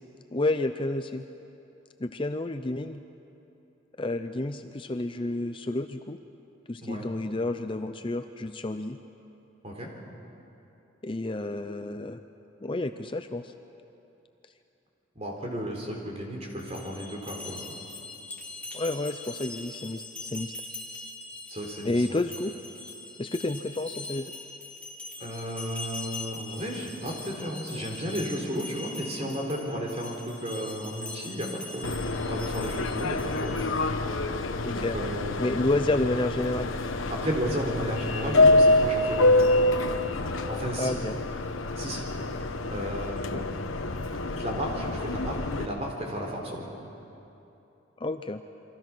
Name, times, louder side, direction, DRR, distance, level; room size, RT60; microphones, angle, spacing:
voice 1, 0.3-1.2 2.0-3.0 4.0-6.2 6.7-9.0 11.0-12.2 12.6-13.5 18.7-20.5 21.8-22.5 23.2-24.3 34.6-35.0 35.4-36.7 40.8-41.2 48.0-48.4, left 2 dB, 25° left, 8 dB, 0.5 m, -30 dB
voice 2, 15.2-17.6 21.5-22.2 25.2-33.7 34.7-35.5 37.1-39.4 40.5-41.0 41.8-42.1 42.7-43.4 44.3-46.6, equal, 30° right, 0 dB, 4.0 m, -33 dB
sound 1, 16.5-33.9, left 2 dB, 5° left, 2.4 m, -42 dB
Subway metro underground, 31.8-45.7, left 2 dB, 85° left, 1.1 m, -26 dB
29.0 x 23.5 x 6.2 m, 2.9 s
head